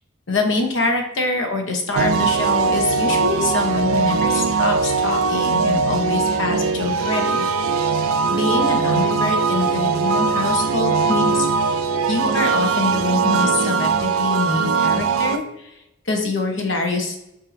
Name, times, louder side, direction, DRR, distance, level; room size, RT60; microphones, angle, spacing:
voice 1, 0.3-7.5 8.3-11.5 12.1-15.8 16.1-17.2, left 3 dB, 60° left, 3 dB, 0.8 m, -24 dB
sound 1, 1.9-15.4, right 4 dB, 85° right, 0.3 m, -20 dB
5.6 x 2.7 x 2.5 m, 0.84 s
head